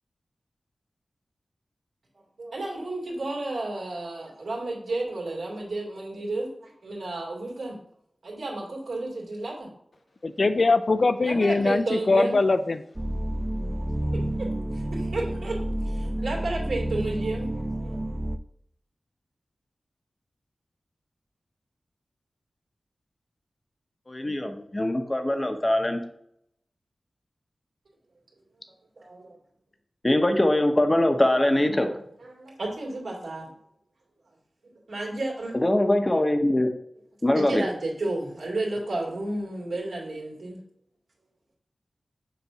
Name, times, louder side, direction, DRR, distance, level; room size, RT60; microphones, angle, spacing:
voice 1, 2.4-7.8 8.2-9.7 11.2-12.4 14.0-15.6 15.8-18.0 29.0-29.4 31.7-31.8 32.2-33.5 34.9-35.6 37.3-40.6, right 2 dB, 80° right, -3 dB, 2.3 m, -32 dB
voice 2, 10.2-12.8, left 3 dB, 55° left, 11 dB, 0.4 m, -22 dB
sound 1, 13.0-18.4, right 1 dB, 20° right, 0.4 m, -29 dB
voice 3, 24.1-26.0 30.0-31.9 35.6-36.7 37.2-37.6, left 1 dB, 25° left, 5 dB, 0.7 m, -22 dB
6.9 x 2.6 x 5.6 m, 0.73 s
wide cardioid pair, 75°, 0 cm